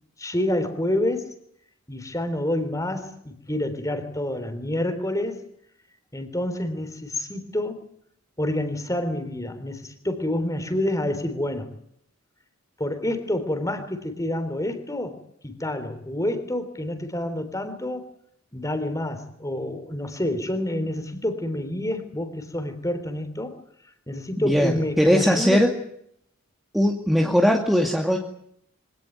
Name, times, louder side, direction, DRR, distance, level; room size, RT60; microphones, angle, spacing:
voice 1, 0.2-1.3 1.9-5.4 6.1-7.8 8.4-11.7 12.8-18.1 18.5-23.6 24.1-25.6, left 1 dB, 15° left, 9 dB, 3.6 m, -28 dB
voice 2, 24.4-25.8 26.7-28.2, equal, ahead, 1 dB, 2.3 m, -20 dB
25.0 x 18.5 x 9.3 m, 0.70 s
head